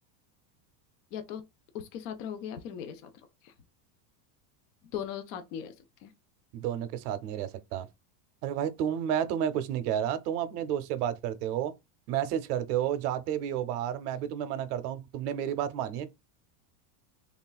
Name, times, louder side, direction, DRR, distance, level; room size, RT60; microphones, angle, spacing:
voice 1, 1.1-1.4 1.7-3.1 3.4-3.5 4.9-5.7 6.0-6.1, left 8 dB, 50° left, 0.5 m, -38 dB
voice 2, 6.5-7.9 8.4-11.7 12.1-16.1, right 10 dB, 65° right, 0.6 m, -31 dB
3.1 x 2.4 x 2.2 m
supercardioid pair, 170°, 49 cm